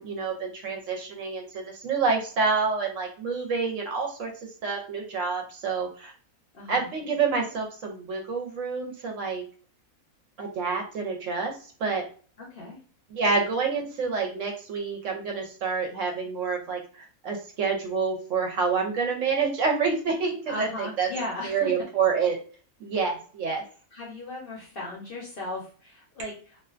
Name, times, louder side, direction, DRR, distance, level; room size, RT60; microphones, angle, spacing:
voice 1, 0.0-4.3 4.6-6.1 6.7-9.4 10.4-12.0 13.1-21.1 21.4-22.4 22.8-23.6, right 5 dB, 70° right, 2 dB, 0.9 m, -28 dB
voice 2, 6.5-6.9 12.4-12.8 20.5-21.7 23.9-26.6, left 2 dB, 55° left, -3 dB, 0.7 m, -36 dB
2.4 x 2.1 x 2.4 m, 0.41 s
omnidirectional pair, 1.5 m